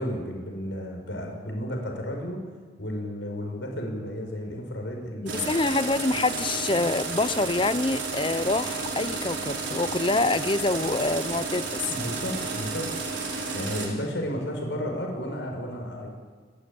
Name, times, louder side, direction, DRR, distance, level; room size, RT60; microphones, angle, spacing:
voice 1, 0.0-2.4 2.8-5.6 11.9-12.9 13.5-16.1, equal, 85° left, 2 dB, 5.6 m, -33 dB
voice 2, 5.2-11.8, left 2 dB, 25° left, 16 dB, 0.6 m, -26 dB
sound 1, 5.3-13.9, right 4 dB, 85° right, 5.3 m, -32 dB
29.5 x 13.0 x 8.7 m, 1.5 s
head